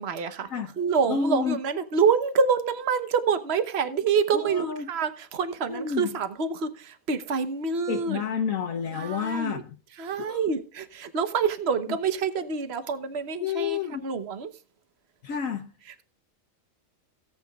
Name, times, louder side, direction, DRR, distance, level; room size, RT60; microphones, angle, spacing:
voice 1, 0.0-0.5 0.8-8.2 8.9-9.6 10.0-14.5, right 5 dB, 50° right, 1.2 m, -27 dB
voice 2, 1.1-1.6 4.3-4.9 5.7-6.1 7.9-9.6 10.2-10.4 13.4-14.1 15.2-15.7, left 6 dB, 75° left, 1.2 m, -29 dB
17.5 x 8.6 x 2.3 m
omnidirectional pair, 1.4 m